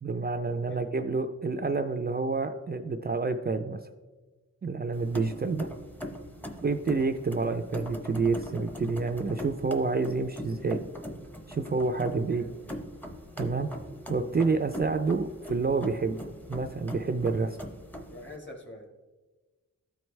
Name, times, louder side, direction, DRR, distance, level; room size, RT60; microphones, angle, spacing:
voice 1, 0.0-3.8 4.6-5.7 6.6-10.8 11.5-12.4 13.4-13.7 14.1-16.2 16.5-17.6, right 4 dB, 30° right, 6 dB, 0.4 m, -28 dB
voice 2, 0.6-1.0 12.3-12.7 18.1-18.9, left 1 dB, 35° left, 2 dB, 1.5 m, -46 dB
sound 1, 4.9-18.4, equal, 5° left, 0.7 m, -41 dB
13.0 x 4.6 x 3.1 m, 1.3 s
wide cardioid pair, 125°, 31 cm